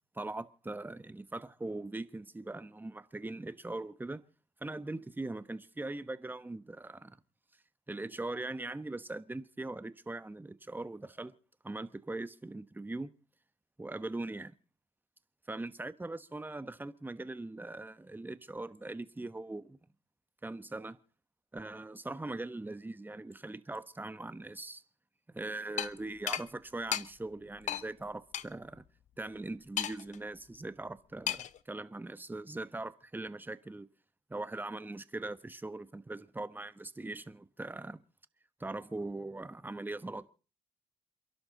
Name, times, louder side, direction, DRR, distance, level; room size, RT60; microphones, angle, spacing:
voice 1, 0.1-4.2 4.6-7.2 7.9-11.3 11.6-13.1 13.8-14.5 15.5-19.8 20.4-21.0 21.5-24.8 25.3-28.8 29.2-33.9 34.3-38.0 38.6-40.3, right 2 dB, 15° right, 1.2 m, -41 dB
sound 1, 25.8-25.9 26.3-26.4 26.9-27.0 27.7-27.8 28.3-28.4 29.8-30.2 31.3-31.6, left 11 dB, 70° left, 0.8 m, -33 dB
28.5 x 11.5 x 4.0 m
cardioid pair, 70°, 13 cm